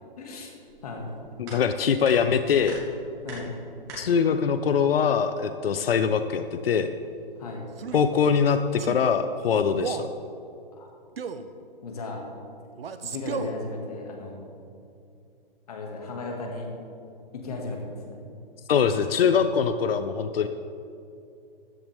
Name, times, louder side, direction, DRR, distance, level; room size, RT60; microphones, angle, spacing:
voice 1, 0.2-0.5 0.8-1.1 3.2-3.5 7.4-7.6 10.8-10.9 11.8-12.2 13.0-14.4 15.7-16.7 17.3-18.2, left 3 dB, 40° left, 1 dB, 1.9 m, -35 dB
sound 1, 0.6-8.3, right 2 dB, 10° right, 1.3 m, -47 dB
voice 2, 1.4-2.8 4.0-6.9 7.9-10.1 18.7-20.5, left 6 dB, 80° left, 10 dB, 0.7 m, -23 dB
Male speech man speaking, 7.7-8.1 8.8-9.1 9.7-10.1 11.2-11.5 12.8-13.6, right 6 dB, 85° right, 0.9 m, -34 dB
14.0 x 10.5 x 3.4 m, 2.6 s
hypercardioid pair, 175°, 29 cm